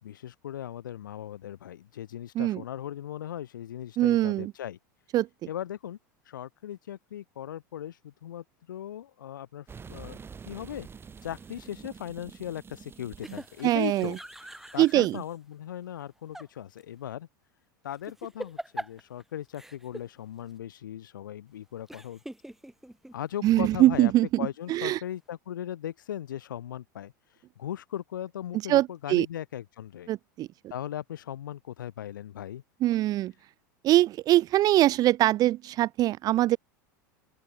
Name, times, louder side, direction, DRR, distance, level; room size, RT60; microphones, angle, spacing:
voice 1, 0.0-4.8 5.5-6.0 6.3-10.2 10.5-10.9 11.2-14.2 14.7-17.3 17.8-22.2 23.1-24.1 24.4-27.1 27.6-30.1 30.7-32.6, left 11 dB, 85° left, 3.0 m, -38 dB
voice 2, 4.0-4.5 5.1-5.3 13.6-14.1 14.8-15.2 23.4-25.0 28.7-29.3 30.1-30.5 32.8-33.3 33.8-36.6, right 15 dB, 40° right, 0.4 m, -23 dB
sound 1, 9.7-15.3, right 6 dB, 20° right, 3.8 m, -48 dB
sound 2, 11.2-11.7 13.2-15.2 16.0-16.5 16.8-16.9 17.9-19.2 19.5-20.1 20.5-20.6 21.9-23.2, right 1 dB, 5° right, 1.9 m, -43 dB
open air
hypercardioid pair, 100°, 10 cm